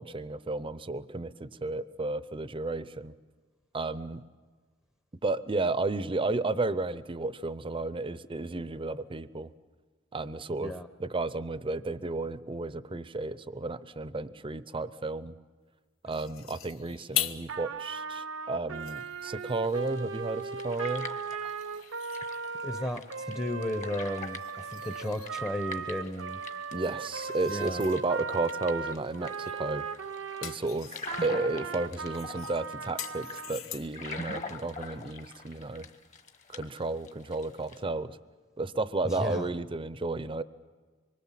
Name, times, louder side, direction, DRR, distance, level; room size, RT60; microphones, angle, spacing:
voice 1, 0.0-3.1 3.7-4.2 5.2-9.5 10.1-10.7 11.0-15.4 16.0-21.1 26.7-29.9 30.4-30.9 31.2-35.9 36.5-38.2 38.6-40.4, right 3 dB, 25° right, 15 dB, 0.6 m, -32 dB
sound 1, 16.1-17.5 18.0-18.1 18.6-19.9 21.4-22.6 24.2-25.4 26.6-28.0 29.4-29.7 30.0-31.3 32.1-34.1, left 11 dB, 80° left, 0.9 m, -40 dB
Trumpet, 17.5-30.6 31.0-33.6, right 5 dB, 70° right, 0.8 m, -38 dB
sound 2, 19.6-37.8, left 3 dB, 35° left, 1.3 m, -45 dB
voice 2, 22.6-26.4 27.5-27.8 39.0-39.5, left 1 dB, 15° left, 8 dB, 0.8 m, -34 dB
25.0 x 23.5 x 7.5 m, 1.4 s
head